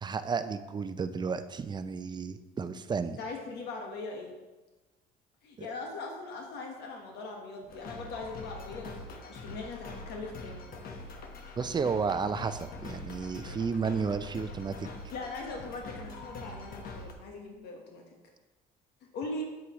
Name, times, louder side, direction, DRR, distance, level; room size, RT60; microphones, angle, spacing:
voice 1, 0.0-3.2 5.6-5.7 11.6-14.9, right 5 dB, 25° right, 11 dB, 0.5 m, -32 dB
voice 2, 3.2-4.3 5.4-10.6 15.1-18.0 19.1-19.4, left 3 dB, 80° left, 1 dB, 1.3 m, -40 dB
sound 1, 7.7-17.1, left 2 dB, 60° left, 1.2 m, -44 dB
8.3 x 7.8 x 3.1 m, 1.1 s
cardioid pair, 110°, 17 cm